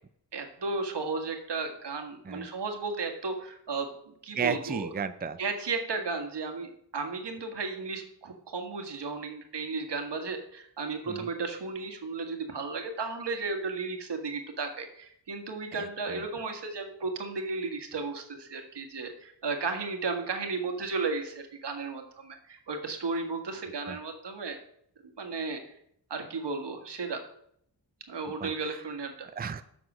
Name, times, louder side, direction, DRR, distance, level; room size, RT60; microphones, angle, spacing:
voice 1, 0.3-4.9 5.4-24.6 25.2-25.7 26.1-27.2 28.1-29.3, right 4 dB, 65° right, 5 dB, 1.7 m, -34 dB
voice 2, 4.3-5.4 11.1-11.3 15.7-15.9 23.9-24.0 28.4-28.8 29.4-29.6, right 6 dB, 20° right, 11 dB, 0.5 m, -33 dB
7.6 x 6.0 x 6.2 m, 0.69 s
cardioid pair, 60°, 44 cm